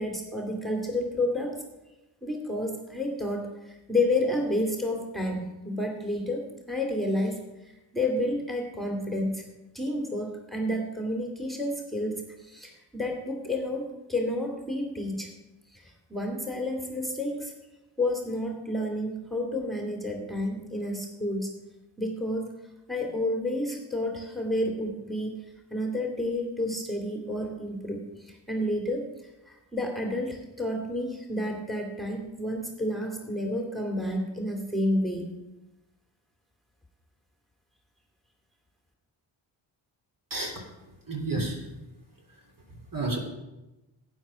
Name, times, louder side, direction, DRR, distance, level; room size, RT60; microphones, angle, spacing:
voice 1, 0.0-1.5 2.2-7.4 7.9-9.4 9.7-15.3 15.7-17.5 18.0-21.5 22.0-22.5 22.9-25.4 25.7-29.1 29.5-35.3, left 1 dB, ahead, 1 dB, 2.4 m, -30 dB
voice 2, 40.3-40.7 41.0-41.9 42.3-43.2, right 2 dB, 40° right, 0 dB, 3.2 m, -33 dB
12.0 x 9.4 x 4.9 m, 1.0 s
supercardioid pair, 45°, 50 cm